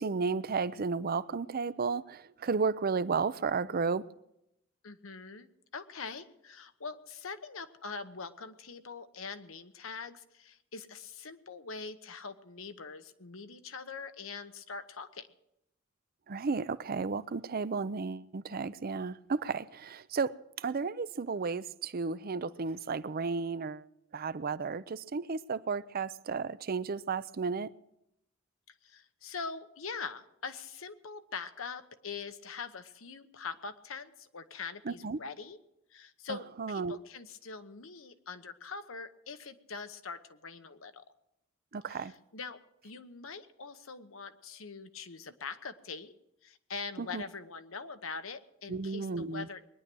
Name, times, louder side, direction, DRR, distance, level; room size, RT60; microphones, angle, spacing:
voice 1, 0.0-4.1 16.3-23.8 24.1-27.7 34.9-35.2 36.3-37.0 41.7-42.1 47.0-47.2 48.7-49.5, right 4 dB, 45° right, 0.6 m, -33 dB
voice 2, 4.8-15.3 28.8-35.6 35.9-41.0 41.9-46.1 46.4-49.7, left 5 dB, 80° left, 1.1 m, -43 dB
21.5 x 10.5 x 6.2 m
head